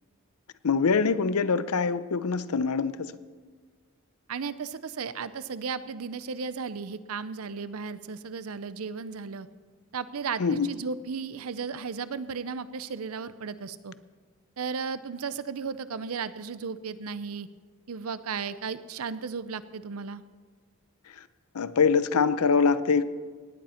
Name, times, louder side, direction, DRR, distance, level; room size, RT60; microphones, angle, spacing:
voice 1, 0.6-3.1 10.4-10.7 21.5-23.0, left 5 dB, 90° left, 15 dB, 0.6 m, -24 dB
voice 2, 4.3-9.5 9.9-13.9 14.6-17.5 17.9-20.2, right 5 dB, 80° right, 14 dB, 0.6 m, -35 dB
18.0 x 10.5 x 4.3 m, 1.5 s
head